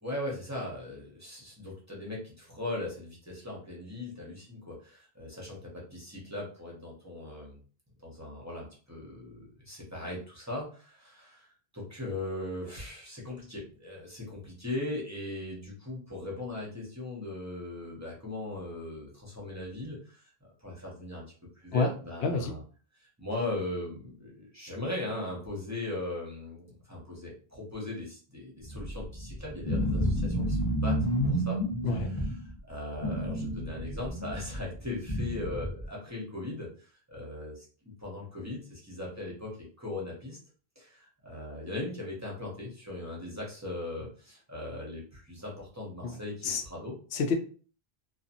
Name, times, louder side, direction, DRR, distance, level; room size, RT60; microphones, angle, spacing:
voice 1, 0.0-7.6 8.0-22.6 22.9-40.4 40.8-46.9, left 2 dB, 20° right, -4 dB, 0.7 m, -39 dB
voice 2, 22.2-22.5 31.8-32.1 46.0-46.2 46.4-46.6 47.1-47.3, left 4 dB, 85° left, 5 dB, 0.8 m, -28 dB
sound 1, 28.6-32.5 32.9-35.9, equal, 25° left, 0.9 m, -30 dB
2.7 x 2.3 x 2.5 m, 0.41 s
omnidirectional pair, 1.0 m